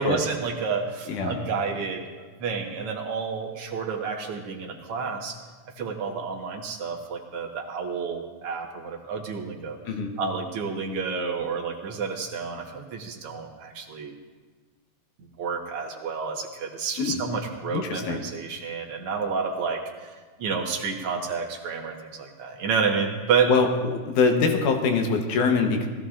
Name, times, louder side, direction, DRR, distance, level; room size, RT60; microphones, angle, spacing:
voice 1, 0.0-5.4 5.8-9.8 10.2-14.1 15.2-20.1 20.4-23.5, right 5 dB, 55° right, 0 dB, 2.0 m, -30 dB
voice 2, 17.7-18.2 23.5-25.9, left 4 dB, 85° left, 4 dB, 2.6 m, -23 dB
19.0 x 15.5 x 2.5 m, 1.4 s
omnidirectional pair, 3.5 m